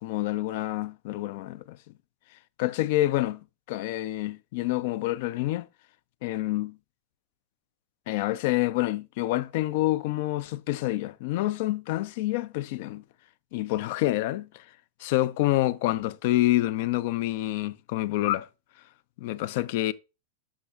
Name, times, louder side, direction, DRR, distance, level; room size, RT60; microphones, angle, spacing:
voice 1, 0.0-1.8 2.6-3.4 3.7-5.7 6.2-6.8 8.1-13.0 13.5-14.6 15.0-18.5 19.2-19.9, left 16 dB, 50° left, 0.4 m, -27 dB
13.0 x 6.1 x 2.3 m
figure-of-eight pair, 90°, 0 cm